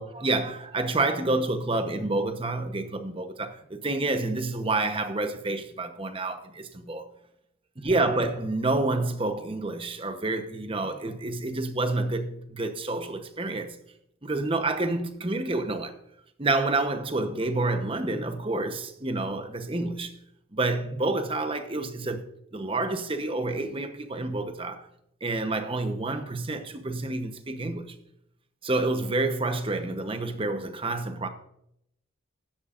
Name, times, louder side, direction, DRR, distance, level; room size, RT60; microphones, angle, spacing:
voice 1, 0.0-7.0 7.8-13.8 14.2-16.0 16.4-20.2 20.5-24.9 25.2-28.0 28.6-31.3, right 2 dB, 25° right, 0.9 m, -28 dB
15.0 x 11.0 x 2.5 m
head